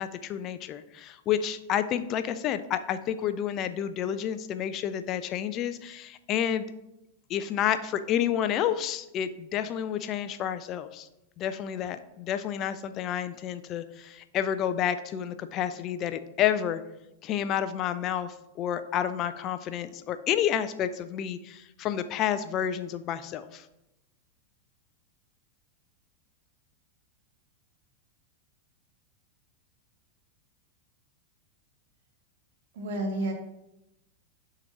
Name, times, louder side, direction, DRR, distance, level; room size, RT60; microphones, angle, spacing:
voice 1, 0.0-6.7 7.3-11.1 11.4-16.8 17.2-23.6, left 10 dB, 35° left, 12 dB, 0.4 m, -30 dB
voice 2, 32.7-33.3, right 1 dB, 55° right, 2 dB, 1.5 m, -30 dB
5.8 x 3.8 x 5.8 m, 0.88 s
figure-of-eight pair, 90°, 0 cm